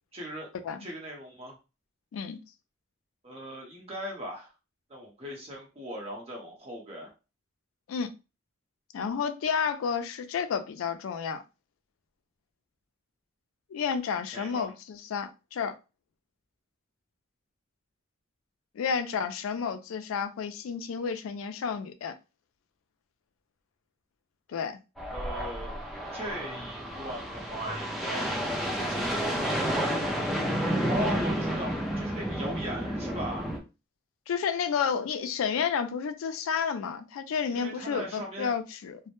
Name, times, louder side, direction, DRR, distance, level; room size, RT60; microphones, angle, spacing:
voice 1, 0.1-0.5 0.8-1.6 3.2-4.5 4.9-7.1 14.3-14.7 25.1-25.7 26.1-29.3 30.9-33.5 37.5-38.6, equal, 30° right, 0.8 m, -39 dB
voice 2, 8.9-11.4 13.7-15.8 18.8-22.1 24.5-24.8 34.3-39.0, left 6 dB, 85° left, 0.3 m, -31 dB
sound 1, 25.0-33.6, equal, ahead, 0.3 m, -31 dB
2.1 x 2.1 x 2.9 m
head